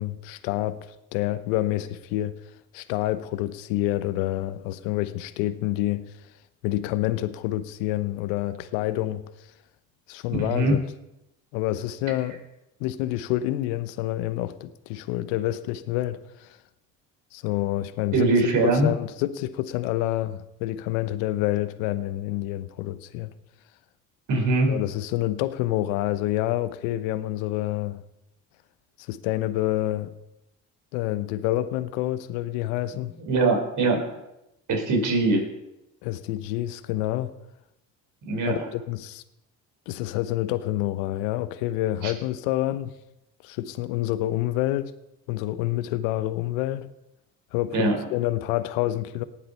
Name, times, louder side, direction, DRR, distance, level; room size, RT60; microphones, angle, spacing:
voice 1, 0.0-2.4 2.7-6.0 6.6-9.2 10.1-10.8 11.5-12.4 12.8-16.5 17.3-18.3 18.6-23.3 24.7-28.0 29.1-30.1 30.9-33.1 36.0-37.3 38.4-39.2 39.9-42.9 43.4-44.9 45.3-46.9 47.5-49.2, left 15 dB, 80° left, 0.9 m, -28 dB
voice 2, 10.4-10.7 18.1-18.9 24.3-24.7 33.2-34.2 34.7-35.4 38.3-38.6 42.0-42.1 47.7-47.9, right 2 dB, 50° right, 4.8 m, -22 dB
18.5 x 7.6 x 5.5 m
supercardioid pair, 70°, 39 cm